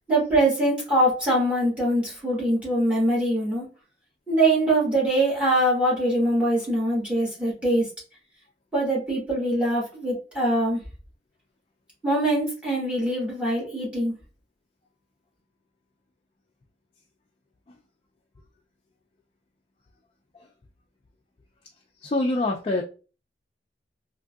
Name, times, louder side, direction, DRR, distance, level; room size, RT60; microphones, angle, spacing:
voice 1, 0.1-3.7 4.3-7.9 8.7-10.8 12.0-14.1, right 1 dB, 5° right, -4 dB, 1.4 m, -23 dB
voice 2, 22.0-22.8, left 2 dB, 30° left, 1 dB, 0.3 m, -24 dB
3.6 x 2.6 x 2.3 m, 0.35 s
head